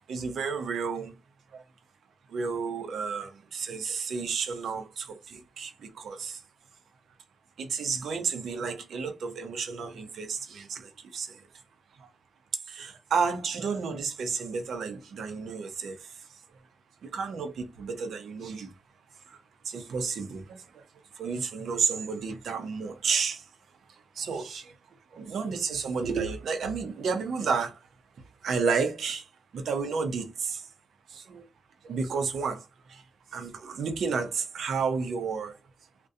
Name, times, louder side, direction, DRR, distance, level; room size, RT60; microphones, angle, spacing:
voice 1, 0.1-1.1 1.5-1.6 2.3-6.4 7.6-11.4 12.0-12.1 12.7-16.0 17.0-18.7 19.7-20.8 21.2-23.4 24.2-24.7 25.1-27.8 28.4-29.3 29.5-30.6 31.1-31.4 31.8-32.6 32.9-33.0 33.3-35.5, right 5 dB, 70° right, 0.5 m, -31 dB
2.6 x 2.1 x 2.4 m
wide cardioid pair, 150°, 0 cm